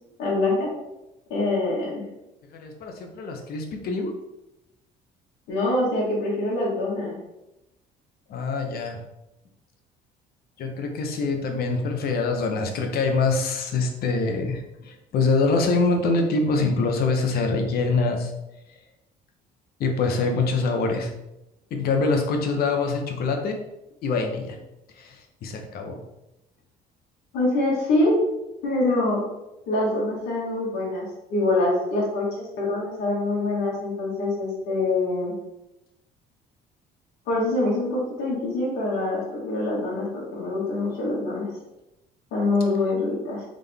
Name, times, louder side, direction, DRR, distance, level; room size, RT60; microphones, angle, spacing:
voice 1, 0.2-0.7 1.3-2.0 5.5-7.1 27.3-28.1 28.6-29.3 29.7-35.3 37.2-41.5 42.3-43.4, left 2 dB, 80° left, -5 dB, 1.6 m, -25 dB
voice 2, 2.5-4.2 8.3-9.0 10.6-18.3 19.8-21.1 21.7-23.6 24.0-24.6 25.0-26.0, left 3 dB, 65° left, 4 dB, 0.9 m, -24 dB
3.7 x 3.7 x 3.5 m, 0.93 s
cardioid pair, 110°, 17 cm